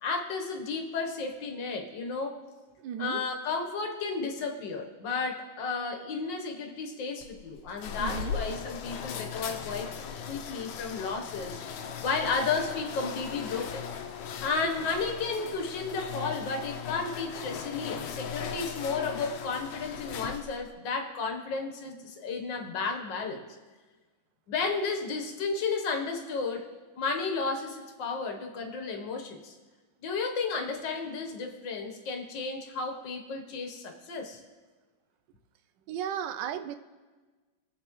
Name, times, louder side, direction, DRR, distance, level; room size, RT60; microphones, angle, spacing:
voice 1, 0.0-2.4 3.0-11.6 12.0-13.8 14.4-23.5 24.5-26.7 27.0-29.6 30.0-34.4, left 4 dB, 70° left, 4 dB, 1.8 m, -33 dB
voice 2, 2.8-3.3 8.0-8.5 14.6-14.7 35.9-36.8, right 9 dB, 75° right, 8 dB, 1.2 m, -35 dB
sound 1, 7.2-20.7, left 7 dB, 85° left, 1.5 m, -38 dB
20.5 x 7.9 x 3.1 m, 1.3 s
omnidirectional pair, 2.1 m